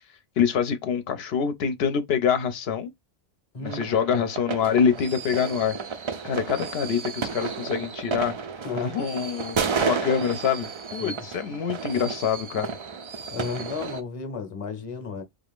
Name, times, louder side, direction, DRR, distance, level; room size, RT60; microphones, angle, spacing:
voice 1, 0.4-2.9 3.6-5.8 6.2-8.3 8.8-12.7, left 7 dB, 80° left, 0.8 m, -25 dB
voice 2, 3.5-3.9 8.6-9.0 11.0-11.1 13.3-15.2, left 4 dB, 35° left, 0.8 m, -33 dB
sound 1, 3.6-14.0, right 5 dB, 50° right, 0.3 m, -32 dB
3.5 x 2.4 x 3.5 m
omnidirectional pair, 1.1 m